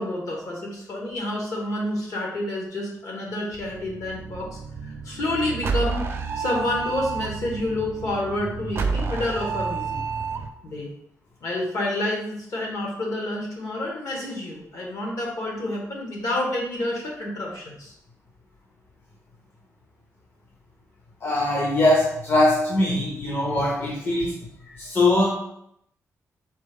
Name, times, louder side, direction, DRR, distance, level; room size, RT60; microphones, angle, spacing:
voice 1, 0.0-6.1 6.3-10.0 10.6-10.9 11.4-17.9, left 1 dB, 60° left, -1 dB, 1.4 m, -29 dB
sound 1, 3.5-10.5, right 5 dB, 45° right, 0.4 m, -30 dB
voice 2, 21.2-24.3 24.8-25.3, left 1 dB, 35° left, -3 dB, 0.7 m, -21 dB
4.3 x 3.2 x 3.5 m, 0.75 s
wide cardioid pair, 160°, 6 cm